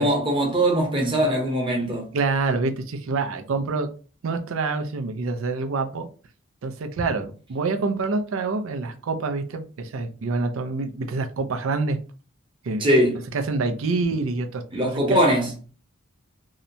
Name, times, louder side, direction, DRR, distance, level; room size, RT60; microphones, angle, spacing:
voice 1, 0.0-2.1 12.8-13.2 14.7-15.5, right 1 dB, 25° right, 0.7 m, -21 dB
voice 2, 2.1-3.9 4.2-6.1 6.6-12.0 12.6-12.9 13.3-15.2, right 3 dB, 85° right, 0.4 m, -26 dB
2.7 x 2.1 x 2.6 m
head